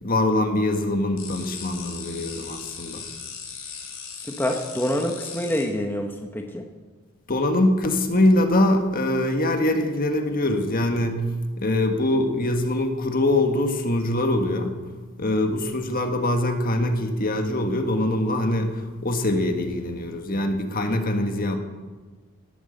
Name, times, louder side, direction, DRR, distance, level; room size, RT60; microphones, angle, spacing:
voice 1, 0.0-3.0 7.3-11.2 11.6-14.8 15.2-21.6, left 1 dB, 40° left, 5 dB, 1.7 m, -23 dB
sound 1, 1.2-5.6, left 6 dB, 75° left, 4.6 m, -38 dB
voice 2, 4.3-6.7, equal, 10° left, 2 dB, 1.1 m, -26 dB
18.0 x 9.2 x 7.8 m, 1.4 s
head